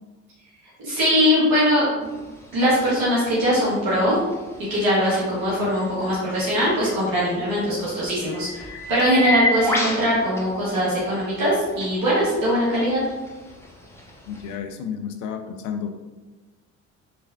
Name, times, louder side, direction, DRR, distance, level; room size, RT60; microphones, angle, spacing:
voice 1, 0.8-2.1 2.5-4.2 4.7-13.0, equal, 55° right, -8 dB, 1.4 m, -21 dB
sound 1, 2.0-14.5, left 1 dB, 5° left, 0.6 m, -33 dB
voice 2, 14.3-15.9, left 7 dB, 50° left, 7 dB, 0.5 m, -32 dB
3.3 x 3.1 x 2.4 m, 1.2 s
figure-of-eight pair, 50°, 40 cm